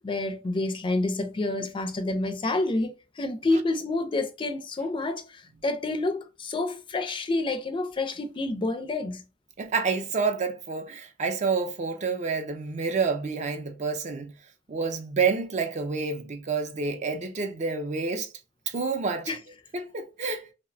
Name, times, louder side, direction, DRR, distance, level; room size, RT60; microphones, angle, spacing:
voice 1, 0.0-9.2 19.3-19.4, left 2 dB, 30° left, 0.4 m, -28 dB
voice 2, 9.6-14.3 14.7-18.3 18.7-19.3 19.7-20.5, right 4 dB, 40° right, 0.4 m, -28 dB
2.7 x 2.1 x 2.4 m
head